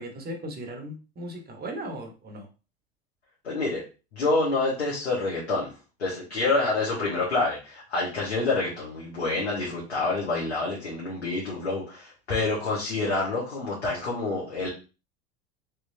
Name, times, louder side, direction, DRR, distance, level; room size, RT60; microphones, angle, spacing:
voice 1, 0.0-2.5, right 1 dB, 30° right, 3 dB, 1.2 m, -37 dB
voice 2, 3.4-3.8 4.1-5.7 6.0-14.7, left 3 dB, 90° left, -6 dB, 1.4 m, -27 dB
3.5 x 3.0 x 2.7 m, 0.32 s
hypercardioid pair, 80°, 33 cm